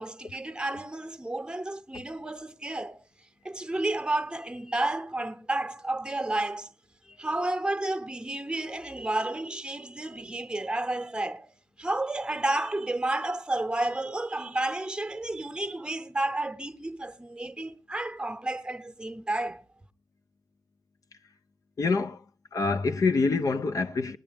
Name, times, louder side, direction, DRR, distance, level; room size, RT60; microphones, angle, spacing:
voice 1, 0.0-6.7 7.0-11.5 11.8-19.6, right 2 dB, 15° right, 0.8 m, -31 dB
voice 2, 21.8-22.2 22.5-24.2, left 4 dB, 65° left, 0.5 m, -26 dB
18.0 x 9.9 x 3.4 m
wide cardioid pair, 125°, 6 cm